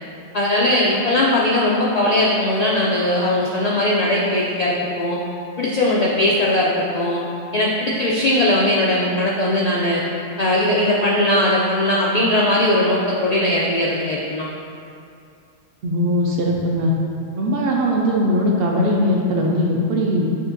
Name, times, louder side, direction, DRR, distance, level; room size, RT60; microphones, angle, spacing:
voice 1, 0.3-5.2 5.6-7.2 7.5-10.0 10.4-14.5, left 1 dB, 80° left, -4 dB, 0.3 m, -19 dB
voice 2, 15.8-16.9 17.4-20.3, equal, 60° right, -1 dB, 0.7 m, -20 dB
6.9 x 2.6 x 2.5 m, 2.5 s
omnidirectional pair, 1.2 m